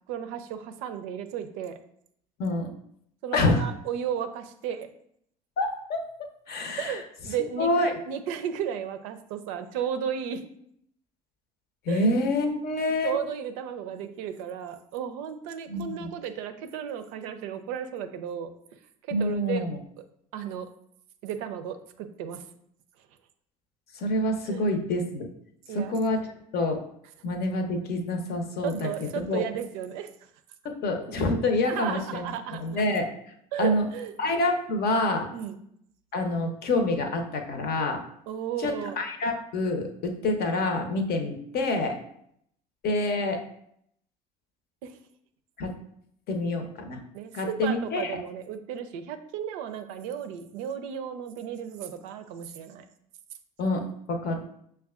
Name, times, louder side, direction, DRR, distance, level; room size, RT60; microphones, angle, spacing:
voice 1, 0.1-1.8 3.2-4.9 6.8-10.4 11.9-12.1 13.0-18.5 19.1-19.7 20.3-20.7 21.2-22.4 24.5-24.6 25.7-25.9 28.6-30.1 31.6-32.8 33.5-34.1 35.3-35.6 38.3-39.0 44.8-45.0 47.1-52.8, right 8 dB, 75° right, 8 dB, 0.4 m, -34 dB
voice 2, 3.3-3.7 5.6-7.0 7.6-7.9 11.9-13.2 15.7-16.1 19.1-19.8 23.9-25.3 25.7-26.3 26.5-26.8 27.2-29.4 30.6-32.3 32.6-33.1 33.6-33.9 34.2-35.3 36.1-38.0 38.6-42.0 42.8-43.4 45.6-45.7 46.3-47.0 47.3-48.2 53.6-54.5, left 2 dB, 55° left, 5 dB, 0.7 m, -27 dB
5.8 x 2.2 x 2.4 m, 0.69 s
hypercardioid pair, 60°, 19 cm